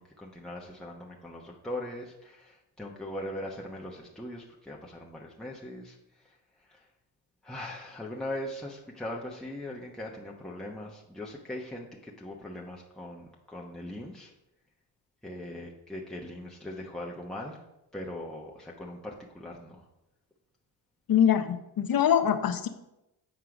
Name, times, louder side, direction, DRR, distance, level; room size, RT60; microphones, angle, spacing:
voice 1, 0.0-6.0 6.2-6.4 6.7-6.9 7.4-14.3 15.2-17.6 17.9-19.8, left 1 dB, ahead, -2 dB, 1.1 m, -40 dB
voice 2, 21.1-22.7, left 9 dB, 45° left, 9 dB, 0.9 m, -24 dB
8.0 x 4.6 x 5.1 m, 0.91 s
supercardioid pair, 60°, 49 cm